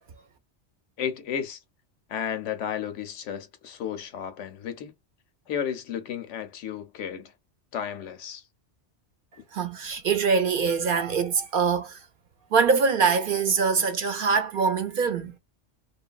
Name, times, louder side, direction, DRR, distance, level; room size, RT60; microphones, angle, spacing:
voice 1, 1.0-1.6 2.1-4.9 5.5-7.3 7.7-8.5, left 8 dB, 85° left, 1.0 m, -33 dB
voice 2, 9.5-12.1 12.5-15.3, right 5 dB, 60° right, 0.6 m, -23 dB
2.9 x 2.6 x 2.3 m
omnidirectional pair, 1.2 m